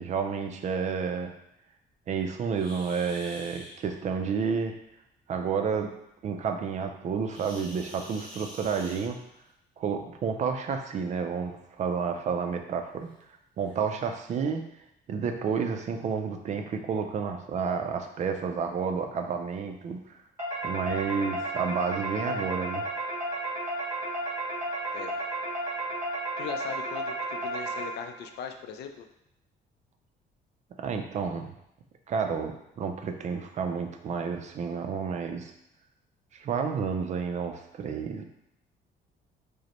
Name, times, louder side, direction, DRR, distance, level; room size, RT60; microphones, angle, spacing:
voice 1, 0.0-1.3 2.1-4.8 5.3-5.9 6.2-9.2 9.8-13.1 13.6-14.6 15.1-20.0 20.6-22.8 30.8-31.5 32.1-35.5 36.3-38.2, right 6 dB, 40° right, 5 dB, 0.4 m, -30 dB
sound 1, 2.5-3.7 7.3-9.5 10.7-10.9 11.5-11.6 12.2-12.3 13.1-13.2 13.6-13.8, equal, 5° left, 1.2 m, -46 dB
sound 2, 20.4-28.2, right 1 dB, 15° right, 1.3 m, -33 dB
voice 2, 26.4-29.1, left 7 dB, 65° left, 6 dB, 0.4 m, -39 dB
4.9 x 2.1 x 3.0 m, 0.80 s
cardioid pair, 150°, 18 cm